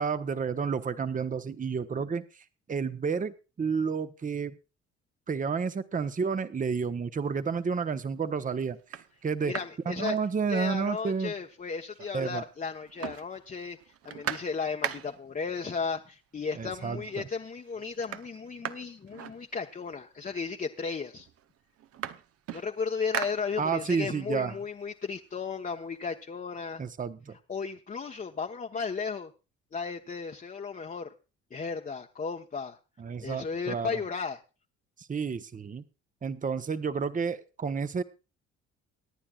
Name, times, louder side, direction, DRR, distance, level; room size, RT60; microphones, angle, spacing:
voice 1, 0.0-2.2 2.7-4.5 5.3-8.8 9.2-9.5 9.9-11.3 12.1-12.4 16.6-17.0 23.6-24.5 26.8-27.3 33.0-34.0 35.1-35.8 36.2-38.0, right 5 dB, 30° right, 12 dB, 0.9 m, -30 dB
sound 1, 7.4-7.8 8.4-8.5 8.8-10.9 11.2-11.3 11.5-12.4 12.6-15.4 16.3-16.4 16.8-17.3 17.6-20.0 20.8-20.9 21.2-24.0 24.4-26.1, right 10 dB, 55° right, 0.9 m, -40 dB
voice 2, 9.4-10.2 10.5-21.3 22.5-26.8 27.5-29.3 29.7-31.1 31.5-32.8 33.2-34.4, left 5 dB, 30° left, 2 dB, 1.0 m, -35 dB
24.0 x 9.9 x 2.4 m, 0.31 s
supercardioid pair, 65°, 29 cm